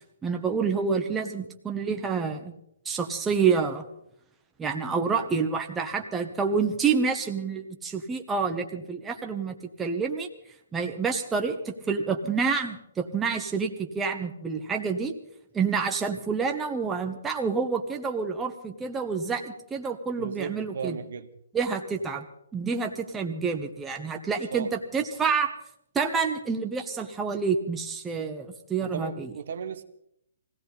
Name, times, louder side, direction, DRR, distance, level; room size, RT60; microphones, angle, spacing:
voice 1, 0.2-2.5 2.8-3.8 4.6-10.3 10.7-15.2 15.5-21.0 21.5-22.2 22.5-25.5 25.9-29.3, right 5 dB, 10° right, 3 dB, 1.2 m, -28 dB
voice 2, 20.2-21.3 24.5-24.7 28.8-29.8, right 7 dB, 60° right, 9 dB, 1.2 m, -36 dB
21.0 x 16.5 x 4.1 m, 0.74 s
hypercardioid pair, 140°, 0 cm